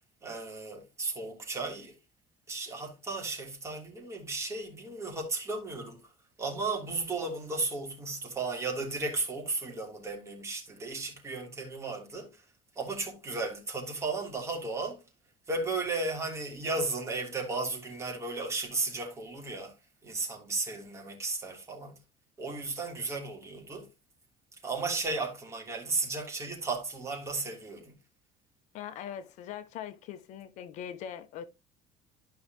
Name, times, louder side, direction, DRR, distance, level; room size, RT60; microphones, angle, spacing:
voice 1, 0.2-1.9 2.5-6.0 6.4-12.3 12.8-15.0 15.5-19.7 20.0-21.9 22.4-23.9 24.6-27.9, right 3 dB, 20° right, 3.1 m, -34 dB
voice 2, 28.7-31.4, left 9 dB, 60° left, 1.0 m, -41 dB
13.0 x 5.6 x 3.0 m
cardioid pair, 140°, 14 cm